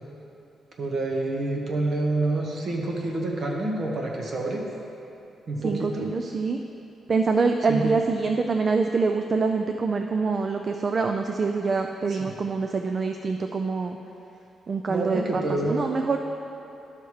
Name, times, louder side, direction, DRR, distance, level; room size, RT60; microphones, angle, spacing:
voice 1, 0.8-4.6 5.5-6.1 7.7-7.9 12.1-12.3 14.9-15.8, right 2 dB, 60° right, -1 dB, 1.3 m, -27 dB
voice 2, 5.6-6.6 7.1-14.0 14.7-16.2, right 4 dB, 45° right, 5 dB, 0.4 m, -25 dB
13.0 x 5.7 x 3.2 m, 2.9 s
cardioid pair, 85°, 0 cm